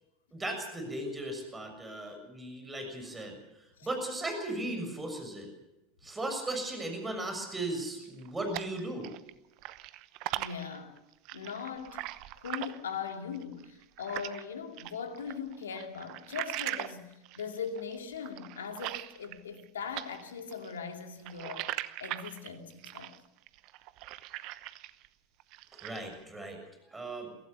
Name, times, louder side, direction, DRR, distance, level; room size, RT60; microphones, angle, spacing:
voice 1, 0.3-3.3 3.8-5.5 6.0-9.1 25.8-26.6 26.9-27.3, right 1 dB, 15° right, 6.7 m, -36 dB
sound 1, 8.0-9.3 9.6-14.4 14.8-19.7 19.9-25.1 25.4-26.1, right 17 dB, 55° right, 0.9 m, -40 dB
voice 2, 10.3-11.0 11.3-12.0 12.4-21.7 22.0-23.2, left 6 dB, 80° left, 2.5 m, -40 dB
23.0 x 16.5 x 6.9 m
hypercardioid pair, 80°, 0 cm